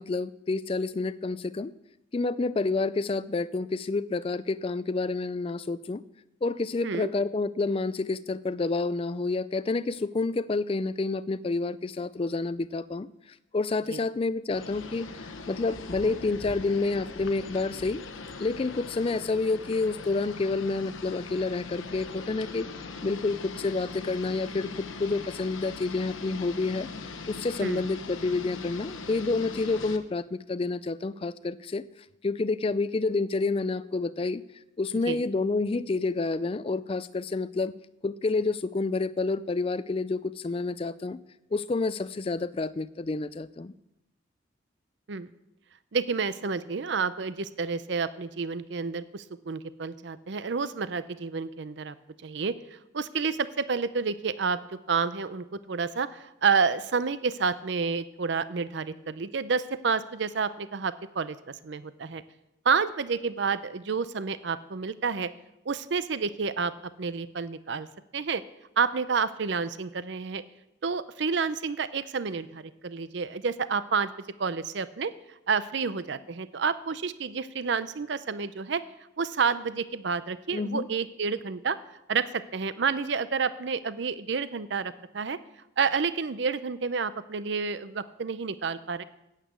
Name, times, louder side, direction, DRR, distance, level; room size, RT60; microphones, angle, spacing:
voice 1, 0.0-1.7 2.1-6.0 6.4-13.1 13.5-18.0 18.4-22.7 23.0-26.9 27.3-31.8 32.2-34.4 34.8-37.7 38.0-41.2 41.5-43.7 80.5-80.9, left 3 dB, 30° left, 16 dB, 0.3 m, -29 dB
sound 1, 14.5-30.0, left 4 dB, 80° left, 0.9 m, -41 dB
voice 2, 45.9-51.9 52.2-54.6 54.9-61.4 61.6-62.2 62.6-65.3 65.7-66.7 67.0-67.9 68.1-68.4 68.8-70.4 70.8-74.1 74.4-75.1 75.5-78.8 79.2-81.8 82.1-85.4 85.8-89.0, right 5 dB, 60° right, 14 dB, 0.5 m, -29 dB
9.1 x 8.3 x 8.2 m, 0.88 s
head